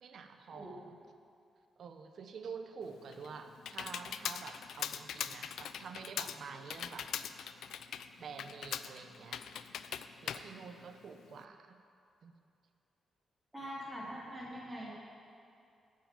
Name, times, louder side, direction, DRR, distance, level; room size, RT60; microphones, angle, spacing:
voice 1, 0.0-1.0 1.8-7.1 8.2-9.4 10.2-11.8 12.2-12.3, right 5 dB, 60° right, 7 dB, 0.8 m, -48 dB
Computer keyboard, 2.8-11.4, left 9 dB, 80° left, 0.4 m, -42 dB
voice 2, 13.5-14.9, equal, 15° right, -6 dB, 3.0 m, -43 dB
11.5 x 5.8 x 8.9 m, 2.5 s
cardioid pair, 135°, 0 cm